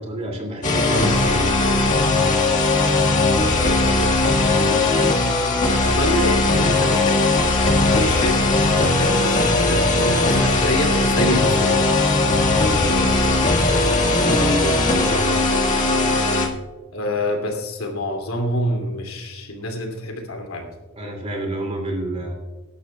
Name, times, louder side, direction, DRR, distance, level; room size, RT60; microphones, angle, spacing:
voice 1, 0.0-1.5 12.6-13.2 14.1-15.4 21.0-22.3, equal, 30° right, 2 dB, 2.6 m, -28 dB
sound 1, 0.6-16.5, left 2 dB, 35° left, 1.7 m, -18 dB
voice 2, 4.0-5.2 5.8-7.2 7.5-8.4 8.8-11.9 15.0-15.1 16.9-20.7, left 1 dB, 80° left, 3 dB, 2.7 m, -27 dB
22.0 x 11.5 x 2.3 m, 1.2 s
head